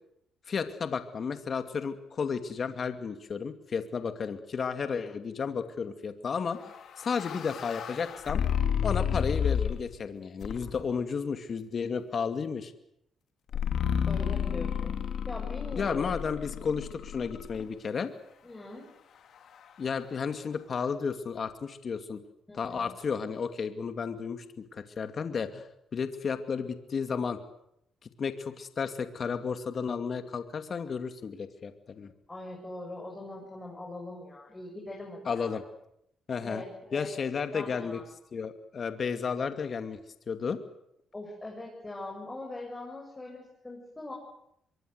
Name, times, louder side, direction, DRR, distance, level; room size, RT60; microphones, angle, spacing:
voice 1, 0.5-8.4 8.8-12.7 15.7-18.1 19.8-22.2 22.5-25.7 25.9-27.4 28.2-32.1 35.3-35.6 36.3-36.6 36.9-38.0 38.3-40.0 40.3-40.6, left 6 dB, 45° left, 8 dB, 2.4 m, -33 dB
sound 1, 6.6-9.9 10.4-10.9 13.5-17.6, left 8 dB, 65° left, 3.2 m, -31 dB
voice 2, 14.1-14.9 15.3-16.1 16.5-16.6 18.4-18.9 22.5-22.9 32.3-35.6 36.4-37.1 37.5-38.0 41.1-44.1, left 2 dB, 15° left, -1 dB, 7.5 m, -41 dB
25.5 x 22.5 x 8.1 m, 0.76 s
cardioid pair, 90°, 0 cm